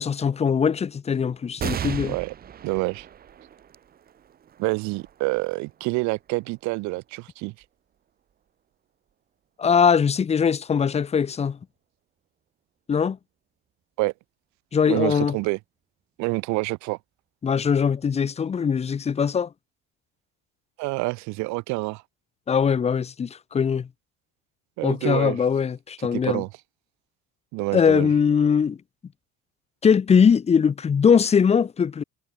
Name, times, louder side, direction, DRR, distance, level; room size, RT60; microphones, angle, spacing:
voice 1, 0.0-2.2 9.6-11.6 12.9-13.2 14.7-15.4 17.4-19.5 22.5-23.9 24.8-26.4 27.7-28.8 29.8-32.0, left 6 dB, 20° left, 1.8 m, -21 dB
sound 1, 1.6-8.5 9.1-9.2 10.3-10.9, right 9 dB, 30° right, 2.6 m, -38 dB
voice 2, 2.0-2.3 2.6-3.1 4.6-7.5 14.0-14.1 14.9-15.6 16.2-17.0 20.8-22.0 24.8-25.4 26.1-26.5 27.5-28.1, right 24 dB, 70° right, 1.1 m, -27 dB
cardioid pair, 165°, 30 cm